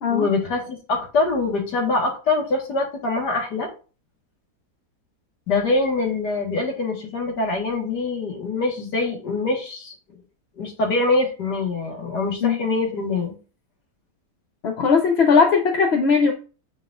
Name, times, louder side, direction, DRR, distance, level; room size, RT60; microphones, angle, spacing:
voice 1, 0.1-3.7 5.5-9.9 10.6-13.3, left 3 dB, 80° left, 1 dB, 2.2 m, -24 dB
voice 2, 14.6-16.3, left 5 dB, 50° left, 2 dB, 0.8 m, -18 dB
8.4 x 5.0 x 2.5 m, 0.35 s
omnidirectional pair, 1.8 m